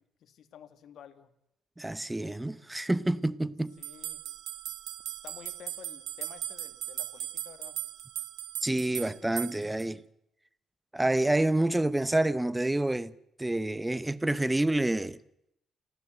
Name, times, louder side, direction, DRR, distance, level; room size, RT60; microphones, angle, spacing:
voice 1, 0.0-1.3 3.8-4.2 5.2-7.8, left 9 dB, 70° left, 2.0 m, -51 dB
voice 2, 1.8-3.8 8.6-10.0 10.9-13.1 13.4-15.2, right 1 dB, 10° right, 0.9 m, -28 dB
sound 1, 3.8-9.9, right 13 dB, 85° right, 1.1 m, -38 dB
29.5 x 13.0 x 7.9 m
cardioid pair, 90°, 0 cm